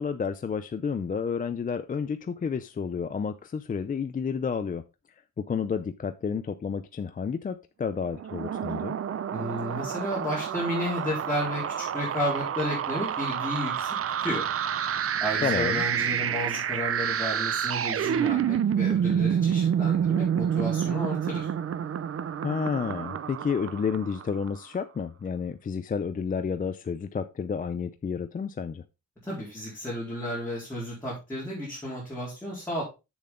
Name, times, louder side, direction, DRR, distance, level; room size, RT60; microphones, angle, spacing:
voice 1, 0.0-4.8 5.4-9.0 15.4-15.8 22.4-28.8, left 6 dB, 25° left, 0.4 m, -30 dB
sound 1, 8.1-24.5, right 8 dB, 45° right, 0.6 m, -28 dB
voice 2, 9.3-14.5 15.2-21.5 29.2-32.8, equal, 5° left, 3.9 m, -32 dB
7.7 x 7.1 x 3.8 m
wide cardioid pair, 170°, 32 cm